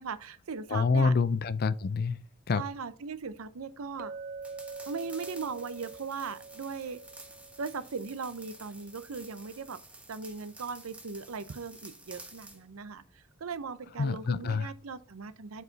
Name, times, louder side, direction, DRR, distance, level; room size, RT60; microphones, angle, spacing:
voice 1, 0.0-1.1 2.5-4.1 4.9-7.0 7.6-9.8 10.1-15.6, right 5 dB, 85° right, 0.7 m, -38 dB
voice 2, 0.7-2.2 2.5-2.6 14.0-14.7, left 4 dB, 45° left, 0.4 m, -27 dB
Chink clink, 4.0-8.2, right 4 dB, 40° right, 0.3 m, -45 dB
sound 1, 4.4-12.6, right 2 dB, 5° right, 1.1 m, -51 dB
8.0 x 4.8 x 4.0 m
head